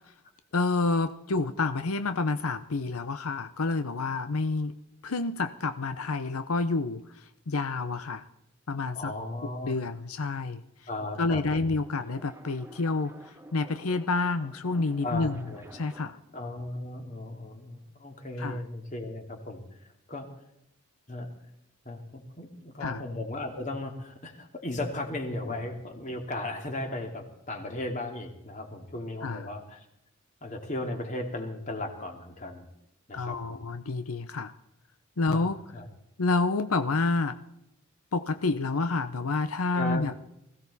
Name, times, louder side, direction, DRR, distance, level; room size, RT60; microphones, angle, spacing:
voice 1, 0.5-4.7 5.0-8.2 8.7-9.1 9.6-10.6 11.2-15.4 15.7-16.2 18.4-18.6 22.8-23.0 29.2-29.5 33.1-34.5 35.2-35.6 36.2-37.4 38.1-40.1, left 3 dB, 90° left, 10 dB, 0.8 m, -29 dB
voice 2, 8.9-9.8 10.9-11.8 15.0-15.6 16.3-20.3 21.1-21.3 21.8-29.9 30.4-32.7 33.1-33.7 35.3-35.9 39.7-40.0, left 2 dB, 35° left, 3 dB, 2.6 m, -36 dB
sound 1, 11.6-16.3, right 1 dB, 10° right, 0.9 m, -51 dB
20.5 x 16.0 x 4.1 m, 0.80 s
head